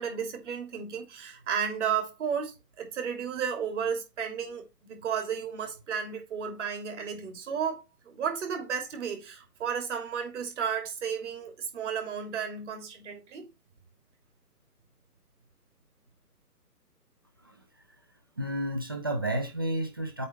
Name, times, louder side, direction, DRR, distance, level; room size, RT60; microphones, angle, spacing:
voice 1, 0.0-13.5, right 7 dB, 45° right, 2.9 m, -33 dB
voice 2, 18.4-20.3, right 1 dB, 15° right, 0.5 m, -31 dB
8.3 x 3.5 x 4.7 m
figure-of-eight pair, 140°, 49 cm